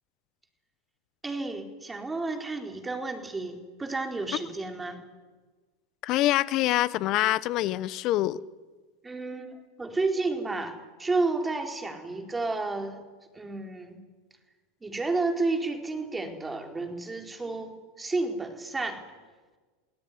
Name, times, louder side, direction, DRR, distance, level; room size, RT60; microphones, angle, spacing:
voice 1, 1.2-5.0 9.0-13.0 13.3-14.0 14.8-19.0, right 3 dB, 15° right, 4 dB, 4.3 m, -31 dB
voice 2, 6.0-8.4, left 16 dB, 50° left, 18 dB, 1.2 m, -25 dB
29.5 x 17.5 x 9.6 m, 1.4 s
hypercardioid pair, 95°, 0 cm